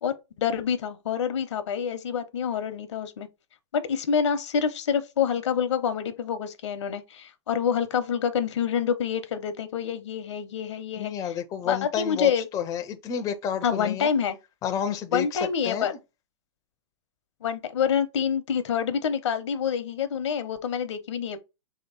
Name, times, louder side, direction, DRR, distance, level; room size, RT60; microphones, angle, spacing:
voice 1, 0.0-3.3 3.7-11.1 11.6-12.5 13.6-14.4 15.1-15.9 17.4-21.4, left 7 dB, 75° left, 0.8 m, -27 dB
voice 2, 11.0-14.1 14.6-15.9, left 8 dB, 25° left, 0.4 m, -30 dB
3.1 x 2.9 x 4.1 m
hypercardioid pair, 130°, 15 cm